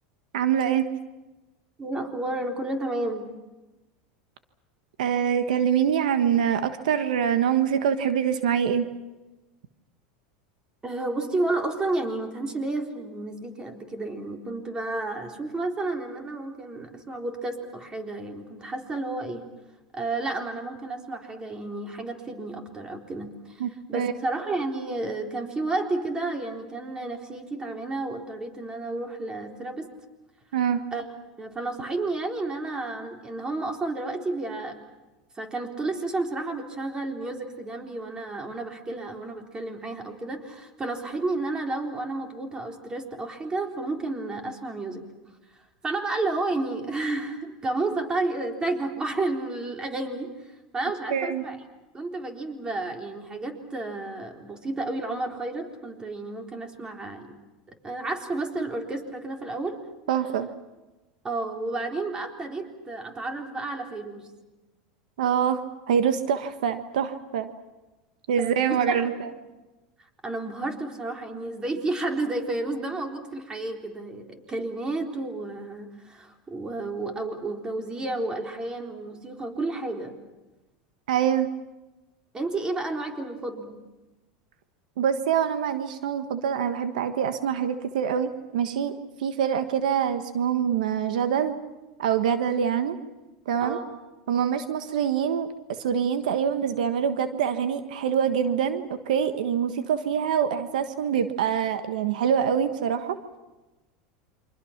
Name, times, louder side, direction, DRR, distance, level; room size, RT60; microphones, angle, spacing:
voice 1, 0.3-0.9 5.0-8.9 23.6-24.1 30.5-30.8 51.1-51.4 60.1-60.5 65.2-67.5 68.3-69.3 81.1-81.5 85.0-88.9 89.2-91.6 92.0-93.0 93.4-93.8 94.3-103.2, right 8 dB, 85° right, 9 dB, 1.4 m, -25 dB
voice 2, 1.8-3.3 10.8-19.5 19.9-23.6 23.9-29.9 30.9-31.1 31.4-34.8 35.4-45.0 45.8-50.3 50.7-51.6 51.9-57.3 57.8-59.8 61.2-64.3 68.4-69.1 70.2-80.1 82.3-83.8 93.6-93.9, right 2 dB, 20° right, 3 dB, 3.9 m, -31 dB
28.5 x 25.0 x 5.9 m, 1.1 s
supercardioid pair, 115°, 4 cm